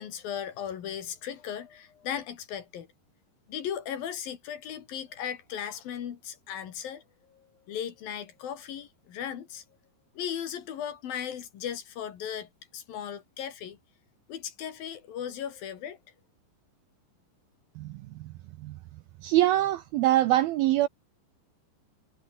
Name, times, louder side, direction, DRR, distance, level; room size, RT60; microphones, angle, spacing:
voice 1, 0.0-2.9 3.5-7.0 7.3-9.6 10.2-13.8 14.3-16.0, left 9 dB, 60° left, 3.4 m, -37 dB
voice 2, 17.8-18.8 19.2-20.9, right 14 dB, 80° right, 2.2 m, -25 dB
omnidirectional pair, 5.2 m